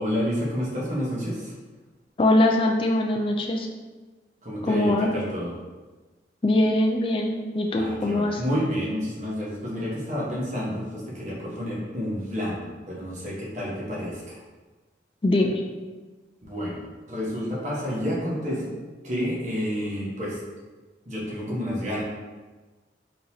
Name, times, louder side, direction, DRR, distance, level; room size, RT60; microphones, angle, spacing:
voice 1, 0.0-1.5 4.4-5.5 7.7-14.4 16.4-16.8 17.1-18.7 19.0-20.4 21.0-22.0, equal, 40° right, -6 dB, 1.1 m, -29 dB
voice 2, 2.2-3.7 4.6-5.1 6.4-8.4 15.2-15.6, left 1 dB, 30° left, 1 dB, 0.3 m, -22 dB
4.3 x 3.9 x 2.7 m, 1.3 s
head